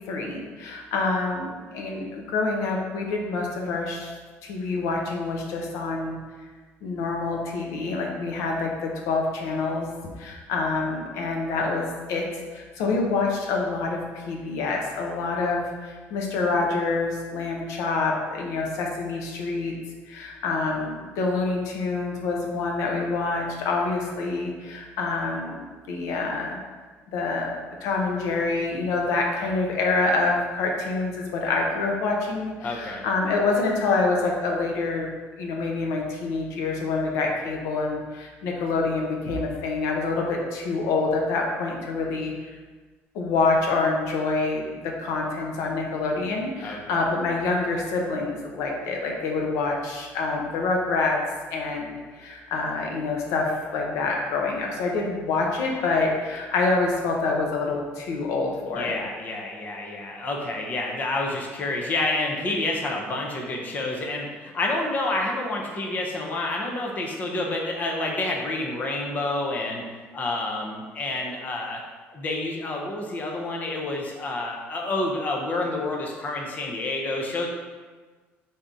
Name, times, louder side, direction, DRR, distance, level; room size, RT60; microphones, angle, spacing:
voice 1, 0.0-4.1 4.4-6.2 6.8-9.9 10.2-12.2 12.5-19.7 20.1-26.6 27.1-35.1 35.4-42.5 43.1-51.2 51.5-59.0, left 3 dB, 80° left, 0 dB, 0.7 m, -26 dB
voice 2, 32.6-33.1 46.6-47.0 58.7-69.8 70.1-71.8 72.1-77.5, left 2 dB, 35° left, 0 dB, 0.5 m, -29 dB
3.5 x 2.7 x 3.7 m, 1.4 s
cardioid pair, 125°, 5 cm